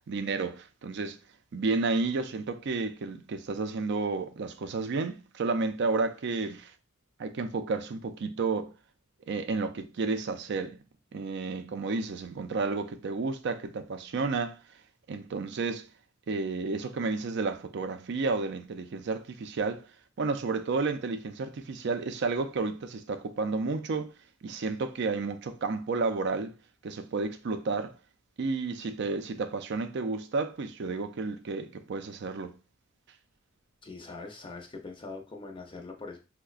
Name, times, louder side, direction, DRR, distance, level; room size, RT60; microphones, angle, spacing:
voice 1, 0.1-1.2 1.5-6.7 7.2-8.7 9.3-10.8 11.1-14.6 15.1-15.9 16.3-19.8 20.2-24.1 24.4-26.5 26.8-27.9 28.4-32.6, right 4 dB, 55° right, 0.4 m, -31 dB
voice 2, 33.8-36.2, left 3 dB, 25° left, 0.5 m, -42 dB
5.4 x 2.1 x 2.4 m
head